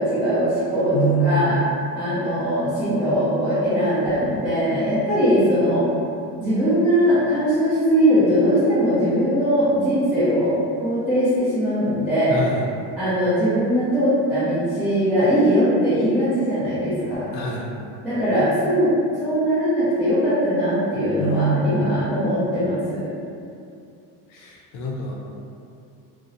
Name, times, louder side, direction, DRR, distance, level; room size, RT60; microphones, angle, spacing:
voice 1, 0.0-1.6 1.9-5.9 6.4-12.4 13.0-17.3 18.0-18.9 19.2-23.1, equal, 5° right, -17 dB, 0.5 m, -20 dB
voice 2, 0.9-1.5 12.3-12.6 17.3-17.7 21.2-22.0 24.3-25.1, right 2 dB, 65° left, -2 dB, 0.6 m, -24 dB
2.6 x 2.0 x 2.5 m, 2.5 s
cardioid pair, 140°, 42 cm